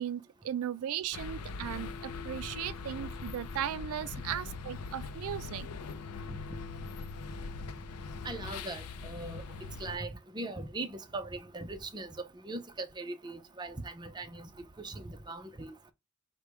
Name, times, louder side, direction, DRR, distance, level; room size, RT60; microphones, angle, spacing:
voice 1, 0.0-5.7, right 10 dB, 70° right, 0.3 m, -37 dB
sound 1, 1.1-10.0, left 4 dB, 90° left, 0.5 m, -41 dB
voice 2, 8.2-9.4 9.8-12.1 12.4-14.5 14.8-15.7, right 2 dB, 20° right, 0.6 m, -40 dB
4.8 x 2.2 x 4.7 m
head